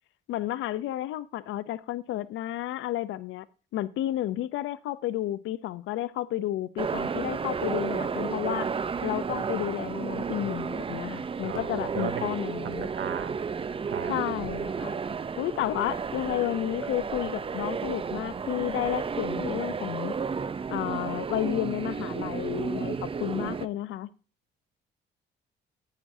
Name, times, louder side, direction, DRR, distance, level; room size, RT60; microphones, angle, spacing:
voice 1, 0.3-3.5 3.7-8.7 9.0-12.9 14.1-15.0 15.4-20.1 20.7-24.1, left 14 dB, 80° left, 0.5 m, -31 dB
sound 1, 6.8-23.7, right 5 dB, 25° right, 0.5 m, -32 dB
sound 2, 11.2-11.6 12.0-13.3 13.6-15.1 15.5-15.7 16.0-16.5 16.7-16.8 17.3-17.9 18.2-18.5 18.9-19.2, right 8 dB, 80° right, 1.6 m, -52 dB
voice 2, 11.4-12.4 12.6-13.3 13.9-14.2, right 9 dB, 60° right, 0.9 m, -36 dB
10.5 x 10.0 x 2.6 m
cardioid pair, 90°, 20 cm